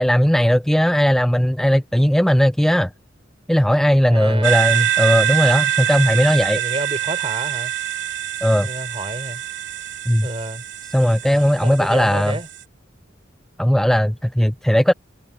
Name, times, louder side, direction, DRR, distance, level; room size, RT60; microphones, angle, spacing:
voice 1, 0.0-2.9 3.5-6.6 8.4-8.7 10.1-10.3 10.9-12.4 13.6-14.9, equal, ahead, 0.5 m, -17 dB
voice 2, 4.1-4.7 6.5-7.7 8.6-9.4 10.2-10.6 11.6-12.5, right 2 dB, 30° right, 4.5 m, -29 dB
sound 1, 4.4-12.6, right 12 dB, 65° right, 2.9 m, -24 dB
head